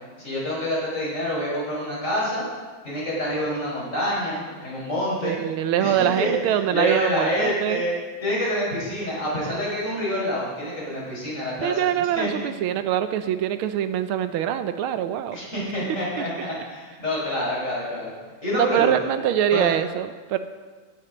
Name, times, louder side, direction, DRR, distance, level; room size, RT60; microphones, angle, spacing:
voice 1, 0.2-2.4 2.8-5.4 5.8-7.9 8.2-12.3 15.3-18.1 18.4-18.9 19.5-19.7, equal, 35° left, -6 dB, 5.6 m, -27 dB
voice 2, 5.2-7.8 11.6-15.4 18.5-20.4, right 10 dB, 85° right, 10 dB, 1.5 m, -24 dB
15.5 x 8.8 x 5.1 m, 1.4 s
omnidirectional pair, 2.3 m